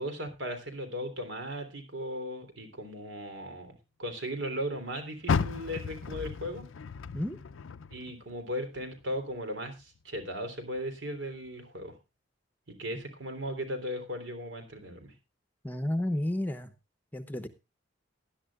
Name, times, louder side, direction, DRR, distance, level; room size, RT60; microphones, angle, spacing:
voice 1, 0.0-6.6 7.9-11.9 12.7-15.1, equal, 70° right, 6 dB, 3.5 m, -37 dB
Car, 5.2-8.5 8.9-10.3 10.7-10.8 11.4-11.5, left 5 dB, 80° left, 0.5 m, -34 dB
voice 2, 15.6-16.7 17.1-17.5, left 1 dB, 10° left, 10 dB, 0.9 m, -31 dB
19.0 x 11.0 x 2.4 m, 0.27 s
head